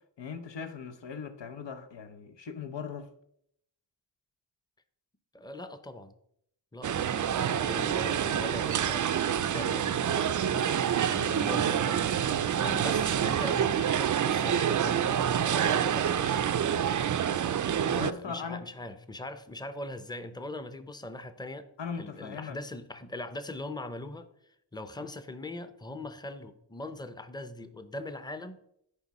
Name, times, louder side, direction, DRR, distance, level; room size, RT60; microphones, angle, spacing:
voice 1, 0.2-3.1 17.8-18.6 21.8-22.6 25.0-25.1, left 6 dB, 80° left, 0.9 m, -39 dB
voice 2, 5.3-6.1 6.7-10.7 11.0-12.3 12.6-15.1 15.4-16.5 18.2-21.7 22.0-24.3 24.7-28.6, left 2 dB, 10° left, 0.7 m, -41 dB
sound 1, 6.8-18.1, right 9 dB, 45° right, 0.4 m, -27 dB
9.9 x 4.7 x 4.2 m
wide cardioid pair, 80°, 43 cm